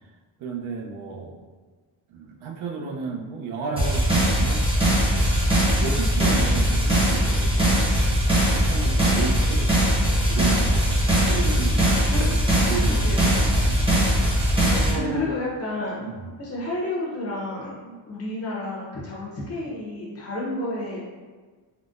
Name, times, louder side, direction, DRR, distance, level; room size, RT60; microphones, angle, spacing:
voice 1, 0.4-1.4 2.1-4.7 5.8-7.8 8.1-9.9 10.3-11.9 12.2-12.4 12.7-13.9 14.6-15.4 16.0-16.3, right 4 dB, 85° right, 0 dB, 0.6 m, -33 dB
sound 1, 3.8-14.9, equal, 10° right, 0.6 m, -20 dB
voice 2, 12.9-13.2 14.9-16.1 16.4-21.0, left 2 dB, 30° left, -5 dB, 0.6 m, -31 dB
3.7 x 2.1 x 2.4 m, 1.4 s
cardioid pair, 175°, 48 cm